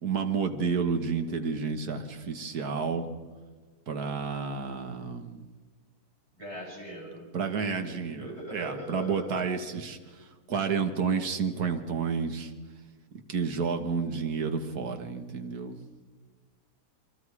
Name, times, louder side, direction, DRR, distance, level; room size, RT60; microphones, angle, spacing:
voice 1, 0.0-3.1 3.9-5.5 7.3-10.0 10.5-12.5 13.3-15.8, right 5 dB, 65° right, 6 dB, 2.0 m, -30 dB
voice 2, 6.4-7.3 7.8-9.5, right 1 dB, 40° right, -3 dB, 7.4 m, -41 dB
28.5 x 23.5 x 4.9 m, 1.4 s
omnidirectional pair, 1.8 m